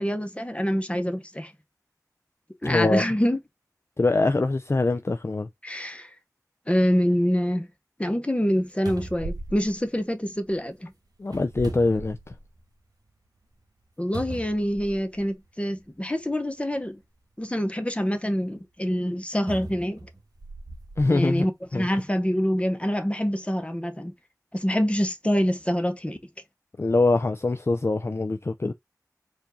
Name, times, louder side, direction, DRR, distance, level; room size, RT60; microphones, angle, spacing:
voice 1, 0.0-1.5 2.6-3.4 5.6-6.1 6.7-7.7 8.0-10.9 14.0-17.0 17.4-20.1 21.1-24.1 24.5-26.2, equal, 20° left, 0.9 m, -26 dB
voice 2, 2.6-3.0 4.0-5.5 11.2-12.2 21.0-21.5 21.7-21.9 26.8-28.7, left 2 dB, 40° left, 0.4 m, -23 dB
sound 1, 8.4-8.5 8.8-10.5 11.2-12.6 13.1-13.2 14.1-15.3 16.2-16.3 19.5-21.1 21.8-21.9, right 2 dB, 70° right, 1.2 m, -38 dB
4.5 x 2.6 x 4.0 m
wide cardioid pair, 50°, 7 cm